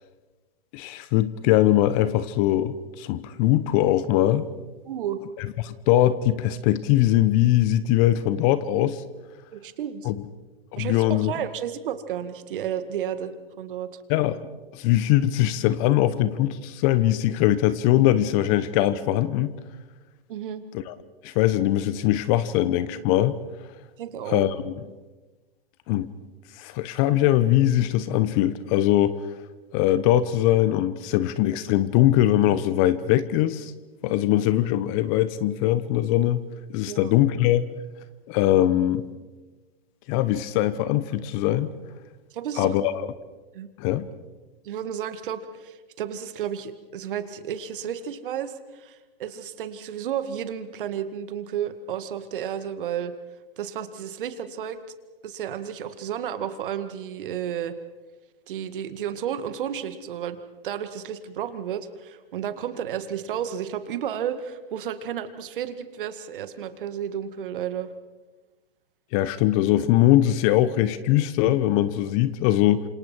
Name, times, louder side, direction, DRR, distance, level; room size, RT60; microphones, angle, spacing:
voice 1, 0.7-4.5 5.4-9.0 10.0-10.1 10.7-11.3 14.1-14.4 14.7-19.5 20.7-20.9 21.2-23.4 24.3-24.7 25.9-26.1 26.6-29.2 29.7-33.7 34.0-36.4 36.7-37.6 38.3-39.0 40.1-41.7 42.6-42.9 43.8-44.1 69.1-72.9, left 13 dB, 35° left, 15 dB, 1.1 m, -21 dB
voice 2, 4.9-5.2 9.5-10.1 10.8-13.9 20.3-20.6 24.0-24.5 36.8-37.1 42.3-42.7 43.5-43.7 44.6-53.1 53.6-54.8 55.2-57.7 58.5-60.4 60.6-67.9, right 9 dB, 55° right, 10 dB, 2.1 m, -32 dB
28.5 x 27.0 x 4.6 m, 1.2 s
hypercardioid pair, 120°, 31 cm